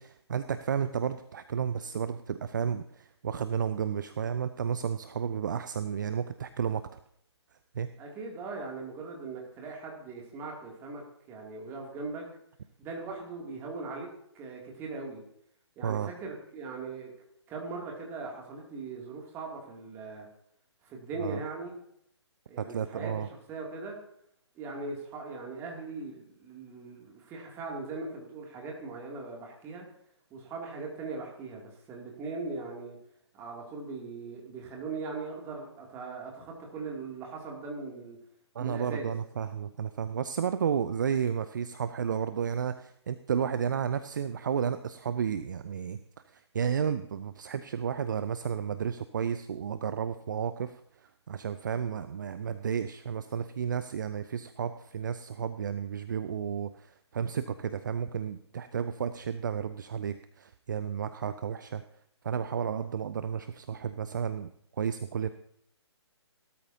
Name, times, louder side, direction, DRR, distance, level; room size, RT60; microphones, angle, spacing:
voice 1, 0.0-7.0 7.7-7.9 15.8-16.1 21.2-21.4 22.6-23.3 38.5-46.0 46.3-61.8 62.2-64.5 64.8-65.3, right 7 dB, 45° right, 12 dB, 0.5 m, -32 dB
voice 2, 8.0-12.2 12.8-14.1 14.3-15.2 15.8-17.1 17.5-20.3 20.8-21.7 22.5-23.2 23.5-24.0 24.5-29.9 30.3-33.0 33.3-38.2 38.6-39.1, right 3 dB, 15° right, -1 dB, 2.6 m, -40 dB
17.0 x 13.0 x 2.8 m, 0.72 s
figure-of-eight pair, 135°, 15 cm